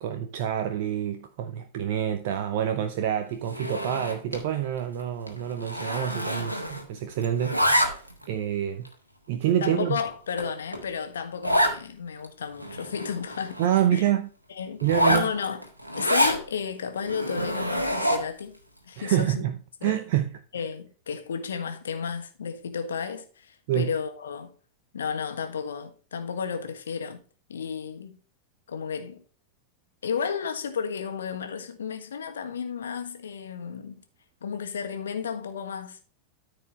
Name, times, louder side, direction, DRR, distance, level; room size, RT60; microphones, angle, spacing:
voice 1, 0.0-8.9 9.3-10.0 13.6-14.3 14.8-15.3 19.0-19.5 19.8-20.3 23.7-23.9, right 10 dB, 50° right, 0.7 m, -27 dB
Zipper (clothing), 3.5-4.5 4.8-5.0 5.3-7.0 7.2-8.2 8.8-8.9 9.5-9.6 10.0-10.1 10.4-10.5 10.7-10.8 11.4-11.8 12.2-12.3 12.5-13.8 14.8-16.4 17.0-18.4, equal, 85° right, 1.7 m, -26 dB
voice 2, 9.6-13.6 13.9-14.0 14.5-15.6 15.9-18.6 18.8-19.5 19.8-20.0 20.5-24.5 24.9-27.2 27.5-28.2 28.7-29.2 30.0-34.0 34.4-36.0, left 6 dB, 65° left, 1.4 m, -33 dB
13.5 x 4.9 x 3.2 m
figure-of-eight pair, 90°, 0 cm